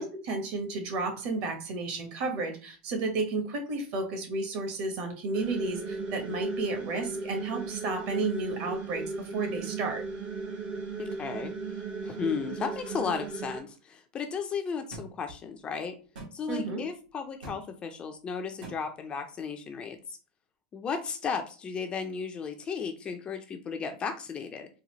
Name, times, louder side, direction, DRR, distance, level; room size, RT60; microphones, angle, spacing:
voice 1, 0.0-10.0 16.5-16.8, right 3 dB, 50° right, 4 dB, 1.1 m, -32 dB
sound 1, 5.3-13.6, right 4 dB, 25° right, 0.6 m, -36 dB
voice 2, 11.0-11.5 12.0-15.9 16.3-20.2 20.7-24.7, left 6 dB, 20° left, 6 dB, 0.4 m, -34 dB
sound 2, 14.9-15.1 16.1-16.3 17.4-17.6 18.6-18.8, right 2 dB, 80° right, 1.7 m, -41 dB
4.0 x 2.4 x 2.9 m, 0.36 s
supercardioid pair, 150°, 5 cm